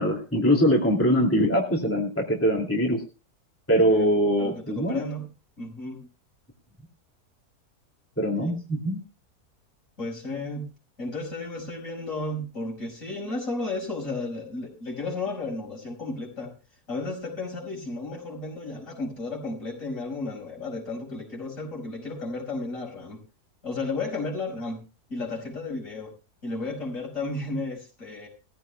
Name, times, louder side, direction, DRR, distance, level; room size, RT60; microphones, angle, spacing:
voice 1, 0.0-3.0 3.7-5.0 8.2-9.0, equal, 10° left, -1 dB, 2.6 m, -22 dB
voice 2, 4.4-5.3 5.6-6.1 8.4-8.5 10.0-10.7 11.0-16.6 16.9-23.2 23.6-24.8 25.1-26.1 26.4-28.3, left 2 dB, 55° left, -1 dB, 6.0 m, -33 dB
20.5 x 15.0 x 2.3 m, 0.32 s
omnidirectional pair, 1.7 m